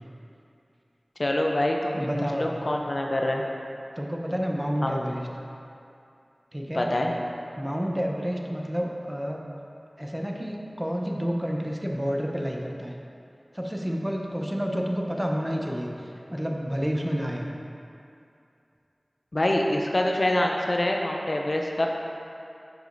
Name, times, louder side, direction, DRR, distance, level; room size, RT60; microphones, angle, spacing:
voice 1, 1.2-3.4 4.8-5.0 6.7-7.1 19.3-21.9, left 1 dB, 55° left, 1 dB, 0.6 m, -25 dB
voice 2, 1.9-2.6 4.0-5.3 6.5-6.9 7.6-9.4 10.0-12.9 13.5-17.5, equal, 10° right, 0 dB, 0.7 m, -29 dB
10.5 x 4.9 x 2.6 m, 2.6 s
wide cardioid pair, 45°, 0 cm